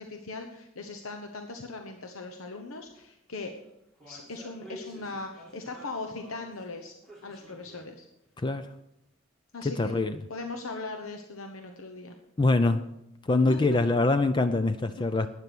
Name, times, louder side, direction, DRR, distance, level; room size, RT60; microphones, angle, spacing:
voice 1, 0.0-3.5 4.1-6.9 7.2-8.0 9.5-10.0 10.3-12.1 13.5-13.8 15.0-15.1, left 3 dB, 90° left, 1.1 m, -39 dB
sound 1, 2.9-3.0 3.3-6.7 7.0-8.0 8.2-8.3 9.1-9.2, left 1 dB, ahead, 2.5 m, -50 dB
voice 2, 9.6-10.2 12.4-12.9 13.2-15.3, left 2 dB, 20° left, 0.4 m, -24 dB
12.0 x 9.6 x 6.1 m
head